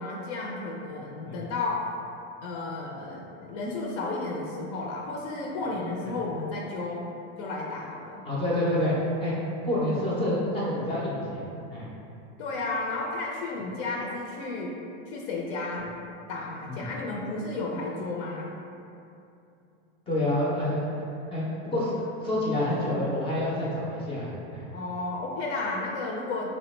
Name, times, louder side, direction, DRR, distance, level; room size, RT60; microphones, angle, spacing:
voice 1, 0.0-1.9 2.4-7.1 7.4-8.2 12.4-14.7 15.1-15.9 16.3-18.5 24.7-26.5, left 3 dB, 75° left, -1 dB, 0.5 m, -33 dB
voice 2, 8.2-9.4 9.6-11.4 11.7-11.9 16.6-16.9 20.1-21.0 21.3-21.9 22.2-24.7, left 1 dB, 15° left, -7 dB, 0.3 m, -28 dB
3.4 x 2.1 x 3.0 m, 2.7 s
supercardioid pair, 150°, 34 cm